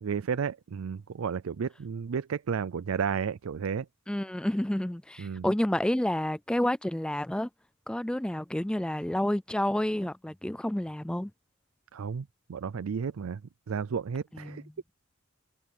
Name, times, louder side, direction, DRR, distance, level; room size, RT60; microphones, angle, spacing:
voice 1, 0.0-3.9 5.2-5.5 11.9-13.4 13.7-14.6, right 6 dB, 80° right, 0.4 m, -32 dB
voice 2, 4.1-7.5 7.9-11.3 14.3-14.6, left 1 dB, 5° left, 0.4 m, -29 dB
head